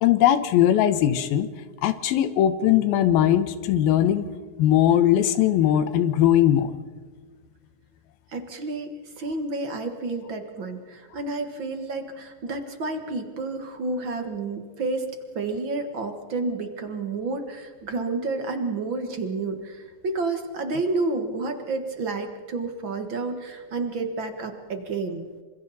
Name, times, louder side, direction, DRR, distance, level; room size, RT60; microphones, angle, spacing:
voice 1, 0.0-1.5 1.8-4.3 4.6-6.7, left 11 dB, 90° left, 11 dB, 2.9 m, -20 dB
voice 2, 8.3-15.1 15.3-25.3, right 3 dB, 45° right, 6 dB, 1.6 m, -30 dB
27.5 x 26.0 x 4.1 m, 1.5 s
omnidirectional pair, 4.1 m